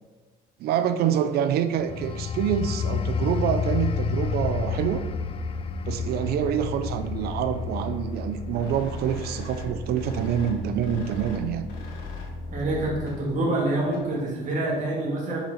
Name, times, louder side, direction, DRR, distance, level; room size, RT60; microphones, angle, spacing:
voice 1, 0.6-5.1 5.8-11.7, right 9 dB, 70° right, 10 dB, 0.4 m, -26 dB
sound 1, 1.8-12.1 12.6-12.8, left 6 dB, 35° left, 0.4 m, -31 dB
sound 2, 4.1-13.0, left 2 dB, 20° right, 1.8 m, -37 dB
sound 3, 8.5-14.3, left 3 dB, 85° left, 1.4 m, -45 dB
voice 2, 12.5-15.4, right 2 dB, 45° right, -4 dB, 1.8 m, -26 dB
5.7 x 4.2 x 3.8 m, 1.2 s
cardioid pair, 110°, 17 cm